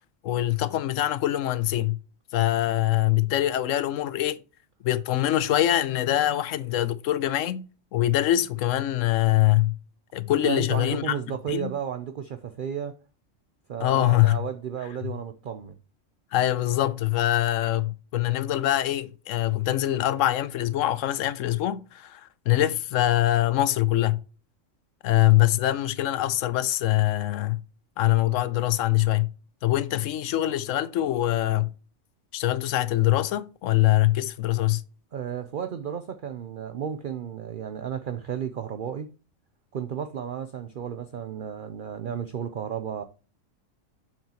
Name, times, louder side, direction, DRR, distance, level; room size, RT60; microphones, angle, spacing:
voice 1, 0.2-2.0 2.3-4.4 4.8-7.6 7.9-9.7 10.1-11.2 11.5-11.7 13.8-14.4 15.0-15.1 16.3-24.2 25.0-27.6 28.0-29.3 29.6-31.7 32.3-34.8, left 14 dB, 80° left, 1.0 m, -23 dB
voice 2, 10.4-13.0 13.7-15.7 35.1-39.1 39.7-43.0, right 8 dB, 55° right, 0.6 m, -33 dB
7.1 x 6.0 x 2.9 m
omnidirectional pair, 1.4 m